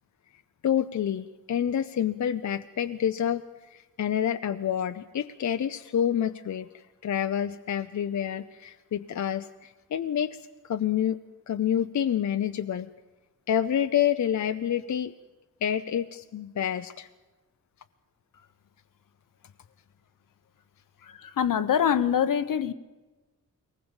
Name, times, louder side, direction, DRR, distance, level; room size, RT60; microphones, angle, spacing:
voice 1, 0.6-3.4 3.7-11.2 11.5-12.9 13.5-15.1 15.6-17.1, left 9 dB, 60° left, 0.7 m, -28 dB
voice 2, 21.0-22.7, left 8 dB, 80° left, 1.1 m, -25 dB
23.0 x 19.5 x 7.1 m
wide cardioid pair, 145°, 32 cm